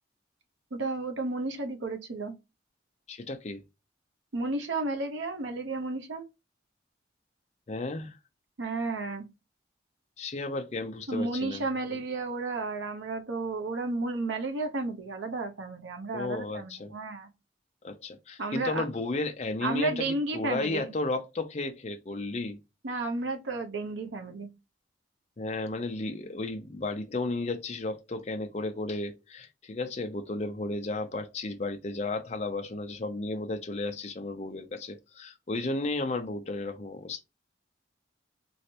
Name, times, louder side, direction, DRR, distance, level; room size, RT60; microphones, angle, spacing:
voice 1, 0.7-2.3 4.3-6.2 8.6-9.3 11.1-17.3 18.4-18.8 19.6-20.9 22.8-24.5, right 3 dB, 85° right, 0.7 m, -32 dB
voice 2, 3.1-3.6 7.7-8.2 10.2-11.6 16.1-16.9 17.8-22.6 25.4-37.2, left 2 dB, 35° left, 0.5 m, -33 dB
3.2 x 3.1 x 2.8 m
head